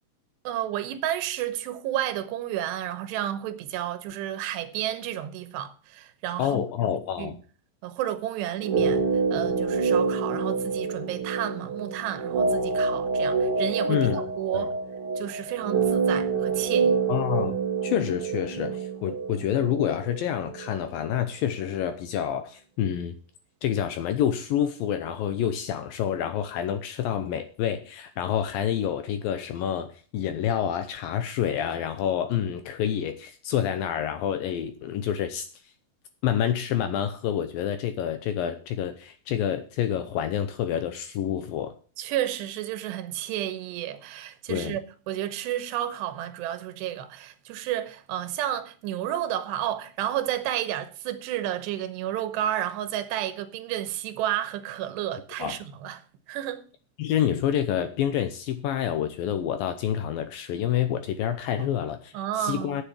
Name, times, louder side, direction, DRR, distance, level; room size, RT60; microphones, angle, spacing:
voice 1, 0.4-7.4 7.8-9.0 9.3-14.7 15.2-17.0 42.0-56.0 56.3-56.6 61.6-61.7 62.1-62.8, right 12 dB, 90° right, 3.1 m, -31 dB
voice 2, 6.4-7.4 13.8-14.2 14.5-14.7 17.1-23.2 23.6-35.5 36.2-41.7 44.5-44.8 55.4-55.6 57.0-62.8, left 10 dB, 75° left, 2.2 m, -28 dB
sound 1, 8.6-20.7 21.0-21.1, right 4 dB, 60° right, 1.5 m, -27 dB
8.8 x 8.3 x 7.2 m
omnidirectional pair, 4.8 m